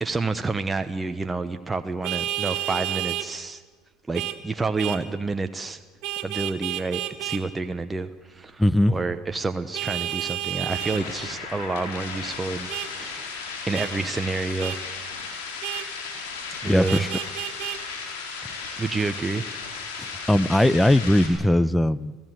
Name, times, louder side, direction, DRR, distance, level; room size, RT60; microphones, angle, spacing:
voice 1, 0.0-3.6 4.1-5.8 6.2-8.6 8.9-13.3 13.7-14.8 16.6-17.1 18.8-19.5, right 3 dB, 20° right, 8 dB, 1.0 m, -29 dB
Vehicle horn car horn honking, 2.0-3.3 4.1-4.4 4.8-5.0 6.0-7.4 9.7-11.0 12.7-12.9 13.7-13.9 14.6-14.8 15.6-15.9 16.9-17.8, right 14 dB, 70° right, 1.7 m, -30 dB
voice 2, 8.6-9.1 16.7-17.1 20.0-22.2, left 1 dB, 5° left, 18 dB, 0.8 m, -20 dB
sound 1, 10.3-21.3, left 5 dB, 85° left, 4.7 m, -35 dB
26.5 x 16.5 x 7.8 m, 1.4 s
hypercardioid pair, 80°, 0 cm